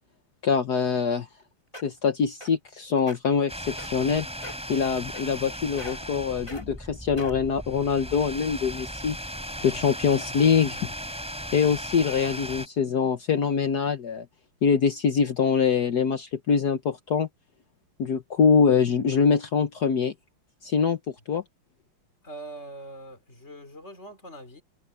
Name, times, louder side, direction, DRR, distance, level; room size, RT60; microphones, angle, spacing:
voice 1, 0.4-1.3 1.8-4.4 4.7-9.2 9.6-10.8 11.5-14.2 14.6-17.3 18.0-20.1 20.6-21.0 21.3-21.4, left 6 dB, 55° left, 1.3 m, -24 dB
sound 1, 1.3-1.4 1.7-2.0 2.4-2.7 3.0-3.2 3.8-4.1 4.4-4.7 5.1-5.5 5.8-6.1 6.5-6.6 7.2-7.5 8.2-8.3, equal, 15° left, 4.5 m, -40 dB
sound 2, 3.5-12.7, equal, 5° right, 3.9 m, -37 dB
voice 2, 9.6-10.9 22.2-24.6, right 1 dB, 30° left, 4.0 m, -44 dB
omnidirectional pair, 2.4 m